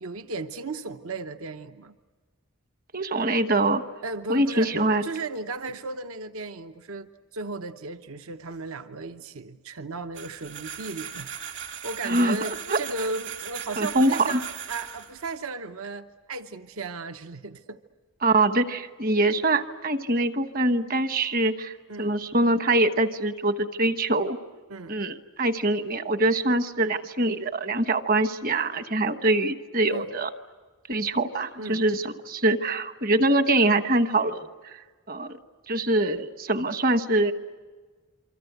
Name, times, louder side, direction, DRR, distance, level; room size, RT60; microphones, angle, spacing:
voice 1, 0.0-1.9 4.0-17.8 21.9-22.2 24.7-25.0 29.9-30.1 31.6-31.8, right 3 dB, 70° right, 9 dB, 0.9 m, -36 dB
voice 2, 2.9-3.8 4.3-5.0 12.0-12.8 13.8-14.4 18.2-24.4 24.9-30.3 30.9-34.5 35.1-35.3 35.7-37.3, right 2 dB, 40° right, 10 dB, 1.2 m, -24 dB
sound 1, 10.2-15.3, right 8 dB, 55° right, 2.6 m, -38 dB
27.5 x 25.0 x 8.1 m, 1.4 s
head